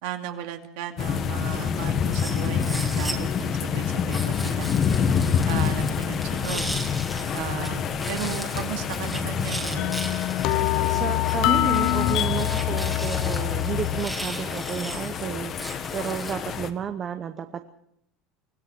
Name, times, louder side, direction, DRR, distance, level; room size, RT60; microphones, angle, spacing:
voice 1, 0.0-4.7 5.5-6.7 7.3-10.0, right 10 dB, 70° right, 6 dB, 2.5 m, -35 dB
sound 1, 1.0-16.7, left 7 dB, 30° left, 1.5 m, -27 dB
sound 2, 2.1-3.5 4.1-7.7 8.0-16.3, right 1 dB, ahead, 2.3 m, -38 dB
sound 3, 9.8-14.1, left 15 dB, 45° left, 1.0 m, -25 dB
voice 2, 10.5-17.7, right 8 dB, 25° right, 9 dB, 1.0 m, -32 dB
24.5 x 17.5 x 6.1 m, 0.75 s
cardioid pair, 165°, 0 cm